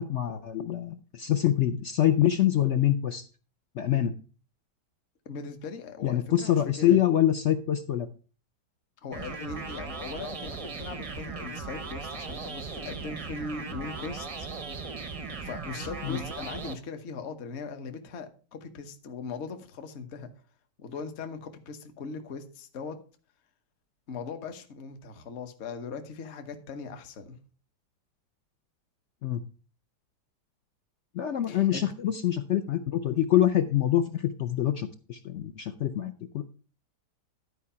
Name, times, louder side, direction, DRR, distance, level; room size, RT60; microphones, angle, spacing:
voice 1, 0.0-3.2 3.7-4.1 6.0-8.1 16.0-16.2 29.2-29.4 31.1-36.4, left 11 dB, 70° left, 8 dB, 0.6 m, -25 dB
voice 2, 5.2-7.0 9.0-14.5 15.4-20.3 20.8-23.0 24.1-27.4 31.5-31.8, left 4 dB, 45° left, 7 dB, 1.1 m, -39 dB
sound 1, 9.1-16.7, right 4 dB, 40° right, 0.4 m, -38 dB
11.5 x 4.8 x 5.5 m, 0.38 s
omnidirectional pair, 1.9 m